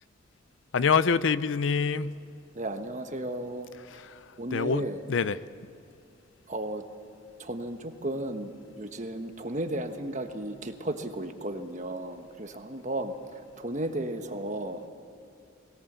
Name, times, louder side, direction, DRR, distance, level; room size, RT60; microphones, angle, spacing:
voice 1, 0.7-2.2 3.9-5.4, left 5 dB, 65° left, 16 dB, 0.5 m, -26 dB
voice 2, 2.5-3.7 4.4-5.0 6.5-6.8 7.4-14.9, right 1 dB, 35° right, 7 dB, 1.3 m, -34 dB
21.5 x 18.0 x 8.1 m, 2.5 s
head